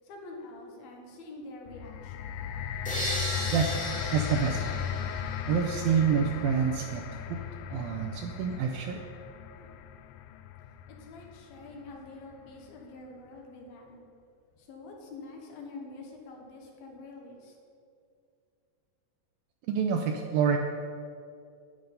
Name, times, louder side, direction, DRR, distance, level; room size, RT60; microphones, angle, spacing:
voice 1, 0.0-2.4 9.6-9.7 10.9-14.0 14.6-17.5, left 2 dB, 70° left, 1 dB, 2.9 m, -46 dB
sound 1, 1.7-11.9 12.6-12.7, left 9 dB, 90° left, 2.0 m, -37 dB
sound 2, 2.8-5.9, equal, 10° left, 0.4 m, -36 dB
voice 2, 4.1-4.8 5.5-7.0 7.3-7.4 7.7-9.1 19.7-20.6, right 7 dB, 80° right, 3 dB, 2.1 m, -27 dB
10.0 x 8.7 x 5.3 m, 2.4 s
omnidirectional pair, 4.7 m